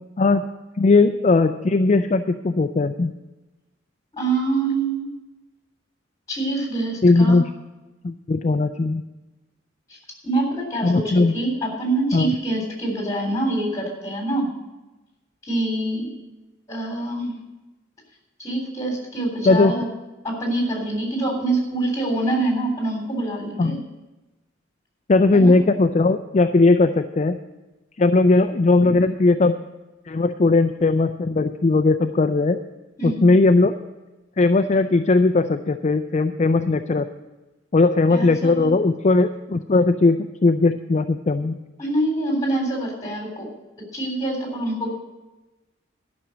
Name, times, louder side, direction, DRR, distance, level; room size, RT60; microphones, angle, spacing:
voice 1, 0.8-3.1 7.0-7.5 8.0-9.0 10.8-11.4 12.1-12.3 19.5-19.7 23.6-23.8 25.1-27.4 28.0-29.6 30.1-32.6 33.0-33.7 34.4-37.1 37.7-41.6, left 3 dB, 35° left, 8 dB, 0.4 m, -18 dB
voice 2, 4.1-5.1 6.3-7.4 9.9-10.0 10.2-14.5 15.4-16.1 16.7-17.3 18.4-19.9 20.2-23.8 25.3-25.6 33.0-33.3 38.1-38.7 41.8-43.5 43.9-44.9, right 2 dB, 20° left, 0 dB, 3.5 m, -25 dB
12.5 x 6.2 x 8.4 m, 1.1 s
head